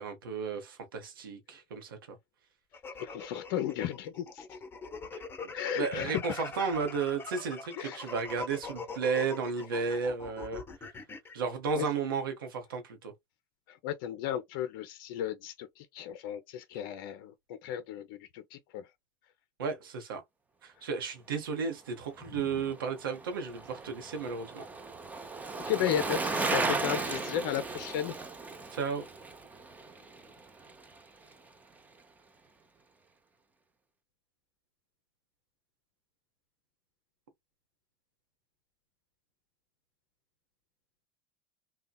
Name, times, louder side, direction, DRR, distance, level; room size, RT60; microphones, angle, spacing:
voice 1, 0.0-2.2 5.8-10.6 11.3-13.1 19.6-20.2 20.6-24.6 28.7-29.0, right 5 dB, 85° right, 0.7 m, -33 dB
sound 1, 2.7-11.4, left 4 dB, 20° left, 0.8 m, -42 dB
voice 2, 3.0-4.6 5.5-6.5 7.8-8.1 11.7-11.9 13.7-18.9 20.8-20.9 22.3-22.4 25.7-28.2, left 10 dB, 65° left, 0.4 m, -35 dB
Bicycle, 22.6-31.0 31.3-31.4, right 3 dB, 15° right, 0.5 m, -36 dB
2.8 x 2.1 x 2.2 m
hypercardioid pair, 85°, 11 cm